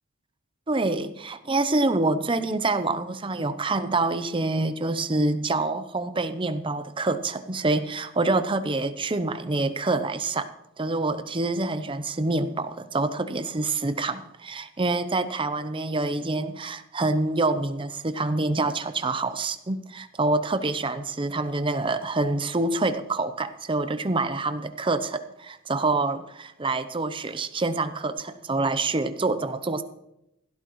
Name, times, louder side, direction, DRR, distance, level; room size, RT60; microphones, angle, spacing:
voice 1, 0.7-10.5 10.8-29.8, right 2 dB, 25° right, 11 dB, 0.6 m, -26 dB
16.0 x 13.0 x 3.1 m, 0.84 s
head